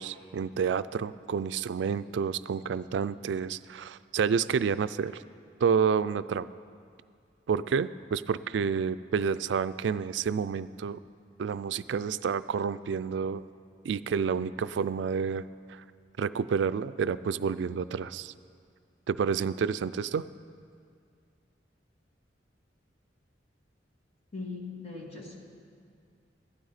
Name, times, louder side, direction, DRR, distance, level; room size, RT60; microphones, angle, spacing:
voice 1, 0.0-5.2 5.6-6.5 7.5-11.0 11.4-13.4 13.8-15.8 16.2-18.3 19.1-20.3, right 6 dB, 85° right, 15 dB, 0.3 m, -29 dB
voice 2, 24.3-25.3, left 3 dB, 35° left, -1 dB, 1.8 m, -39 dB
15.5 x 12.0 x 4.1 m, 2.2 s
head